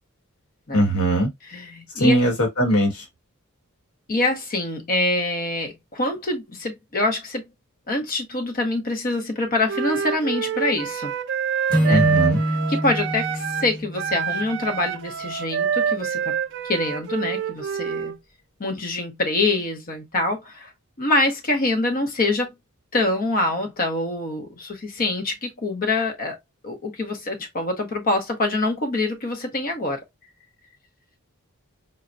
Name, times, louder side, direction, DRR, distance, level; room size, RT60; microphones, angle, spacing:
voice 1, 0.7-1.3 2.0-3.0 11.9-12.4, right 1 dB, 70° left, 1.1 m, -20 dB
voice 2, 1.5-2.2 4.1-7.4 7.9-11.1 11.8-12.0 12.5-16.3 16.6-18.1 18.6-20.7 21.0-22.5 22.9-26.4 26.6-30.0, left 2 dB, 40° left, 0.7 m, -25 dB
Wind instrument woodwind instrument, 9.7-13.7 14.0-18.2, right 7 dB, 55° right, 0.4 m, -27 dB
Acoustic guitar / Strum, 11.7-15.0, equal, 5° left, 1.1 m, -25 dB
4.1 x 2.1 x 2.4 m
head